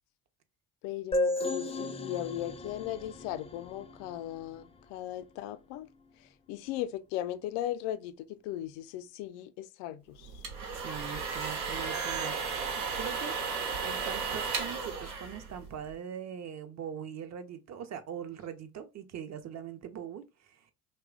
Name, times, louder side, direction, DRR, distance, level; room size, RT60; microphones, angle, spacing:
voice 1, 0.8-5.9 6.2-10.5, left 13 dB, 65° left, 0.5 m, -37 dB
sound 1, 1.1-4.7, left 2 dB, 15° left, 0.4 m, -34 dB
sound 2, 10.2-15.9, right 5 dB, 85° right, 0.9 m, -34 dB
voice 2, 10.7-12.4 12.7-20.7, right 8 dB, 35° right, 0.6 m, -42 dB
3.0 x 2.2 x 3.6 m
hypercardioid pair, 65°, 45 cm